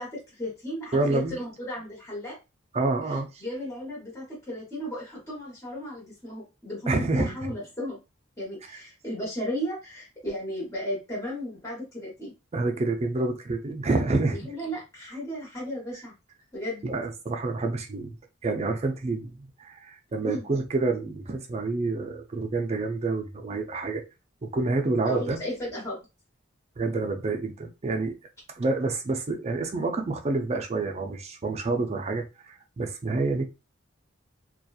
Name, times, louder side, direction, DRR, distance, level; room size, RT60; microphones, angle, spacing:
voice 1, 0.0-2.4 3.1-8.0 8.4-12.3 14.3-16.1 16.5-16.8 20.2-20.4 25.0-26.0, equal, 15° left, 1.0 m, -34 dB
voice 2, 0.9-1.4 2.7-3.4 6.9-7.3 12.5-14.5 16.8-18.2 18.4-24.0 24.4-25.4 26.8-28.1 28.6-33.4, right 3 dB, 30° right, 0.4 m, -28 dB
2.8 x 2.2 x 2.3 m
head